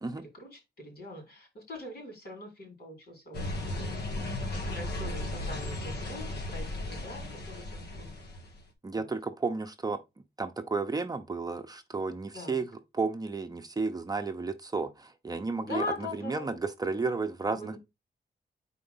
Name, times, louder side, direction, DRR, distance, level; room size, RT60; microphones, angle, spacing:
voice 1, 0.2-4.0 4.7-8.2 8.9-9.1 12.3-12.6 15.6-16.5 17.5-17.8, left 2 dB, 70° left, 3.3 m, -42 dB
sound 1, 3.3-8.6, left 1 dB, 90° left, 1.2 m, -36 dB
voice 2, 8.8-10.0 10.4-12.7 12.9-15.8 16.2-17.8, right 4 dB, 25° right, 0.7 m, -32 dB
4.5 x 3.8 x 5.5 m
wide cardioid pair, 105°, 17 cm